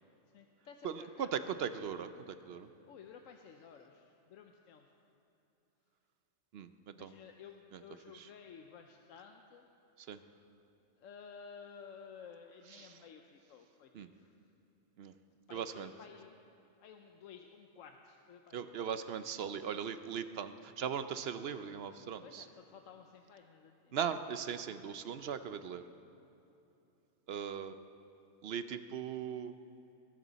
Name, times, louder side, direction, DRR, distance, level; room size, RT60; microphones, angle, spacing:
voice 1, 0.3-1.6 2.6-5.0 6.9-9.7 11.0-14.4 15.5-16.3 16.8-19.2 22.2-24.0, left 6 dB, 80° left, 4 dB, 1.1 m, -54 dB
voice 2, 0.8-2.7 6.5-7.1 7.7-7.8 8.1-8.3 10.1-10.2 12.8-12.9 13.9-14.1 15.0-15.1 15.5-15.9 18.5-22.4 23.9-25.8 27.3-27.8 28.4-29.5, right 7 dB, 60° right, 11 dB, 0.8 m, -39 dB
22.5 x 13.5 x 4.1 m, 2.9 s
omnidirectional pair, 1.3 m